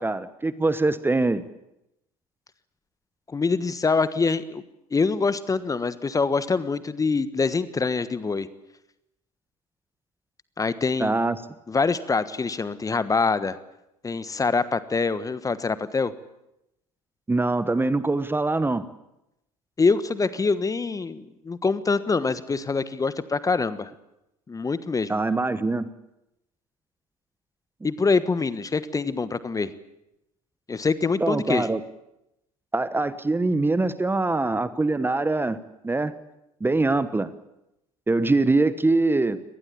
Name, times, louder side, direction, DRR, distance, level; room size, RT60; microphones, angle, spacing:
voice 1, 0.0-1.5 11.0-11.4 17.3-18.8 25.1-25.9 31.2-31.8 32.7-35.6 35.8-36.1 36.6-37.3 38.1-39.4, right 2 dB, 10° right, 14 dB, 1.1 m, -23 dB
voice 2, 3.3-4.6 4.9-8.5 10.6-11.2 11.7-13.6 14.0-16.1 19.8-23.9 24.5-25.2 27.8-29.7 30.7-31.7, left 4 dB, 20° left, 15 dB, 1.3 m, -25 dB
24.0 x 19.5 x 8.6 m, 0.87 s
figure-of-eight pair, 70°, 19 cm